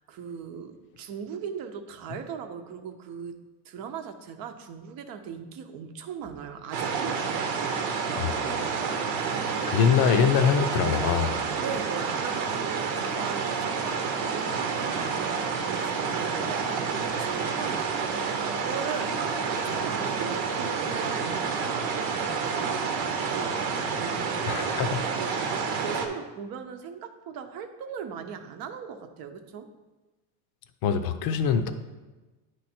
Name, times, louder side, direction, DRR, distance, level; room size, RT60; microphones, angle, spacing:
voice 1, 0.0-7.3 11.6-24.9 25.1-29.7, right 7 dB, 55° right, 7 dB, 0.7 m, -39 dB
sound 1, 6.7-26.1, right 5 dB, 80° right, 0.9 m, -29 dB
voice 2, 9.7-11.3 24.5-25.4 30.8-31.7, left 7 dB, 60° left, 8 dB, 0.6 m, -24 dB
9.5 x 3.2 x 4.3 m, 1.2 s
cardioid pair, 125°, 42 cm